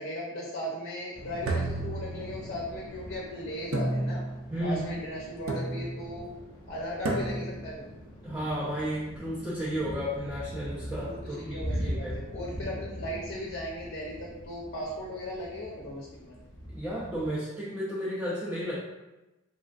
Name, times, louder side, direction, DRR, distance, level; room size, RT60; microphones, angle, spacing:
voice 1, 0.0-4.2 4.6-6.3 6.7-7.8 11.0-16.3, equal, 55° left, -4 dB, 0.5 m, -37 dB
Thunder / Rain, 1.1-17.3, equal, 20° left, 0.9 m, -41 dB
sound 1, 1.4-2.7 3.7-4.5 5.5-6.1 7.1-7.7, right 2 dB, 70° right, 0.4 m, -31 dB
voice 2, 4.5-4.8 8.2-12.2 16.7-18.8, equal, 5° right, -8 dB, 0.4 m, -33 dB
3.1 x 2.4 x 2.3 m, 1.0 s
head